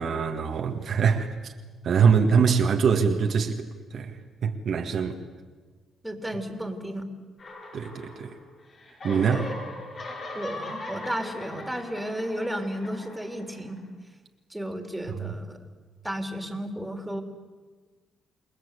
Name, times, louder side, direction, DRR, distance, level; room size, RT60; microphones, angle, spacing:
voice 1, 0.0-1.5 1.8-4.2 4.4-5.2 7.7-8.3 9.0-9.5 15.2-15.3, right 6 dB, 60° right, 3 dB, 2.0 m, -23 dB
voice 2, 6.0-7.0 9.1-9.5 10.3-13.8 14.5-15.6 16.0-17.2, equal, 5° right, 5 dB, 3.5 m, -33 dB
sound 1, 7.4-8.5 8.8-13.8, left 2 dB, 50° left, 7.1 m, -39 dB
29.0 x 20.0 x 8.4 m, 1.4 s
cardioid pair, 90°, 0 cm